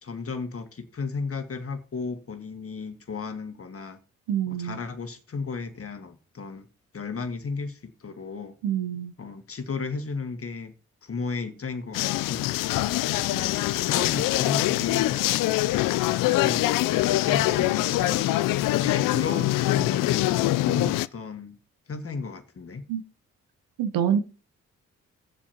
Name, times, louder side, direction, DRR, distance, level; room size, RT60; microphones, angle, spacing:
voice 1, 0.0-4.0 4.5-6.7 6.9-8.6 9.2-10.7 11.0-12.5 13.3-18.4 18.8-21.6 21.9-22.9, left 4 dB, 45° left, 1.8 m, -34 dB
voice 2, 4.3-4.8 8.6-9.1 22.9-23.0 23.8-24.2, right 9 dB, 80° right, 0.9 m, -26 dB
sound 1, 11.9-21.1, left 17 dB, 75° left, 0.5 m, -24 dB
17.5 x 7.2 x 2.8 m
hypercardioid pair, 45°, 33 cm